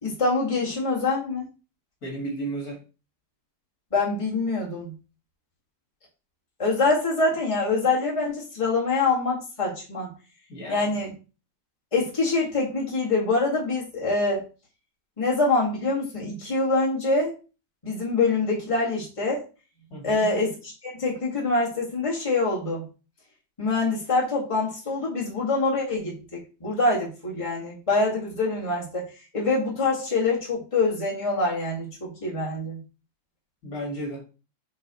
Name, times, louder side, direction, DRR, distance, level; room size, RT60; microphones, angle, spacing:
voice 1, 0.0-1.5 3.9-4.9 6.6-10.1 10.7-11.2 11.9-14.4 15.2-17.3 17.8-19.4 20.0-22.8 23.6-26.1 26.6-29.1 29.3-32.8, left 3 dB, 15° left, -4 dB, 2.1 m, -25 dB
voice 2, 2.0-2.8 10.5-10.9 19.9-20.3 33.6-34.2, right 1 dB, 50° left, -1 dB, 2.6 m, -33 dB
8.2 x 4.6 x 3.1 m, 0.32 s
omnidirectional pair, 2.0 m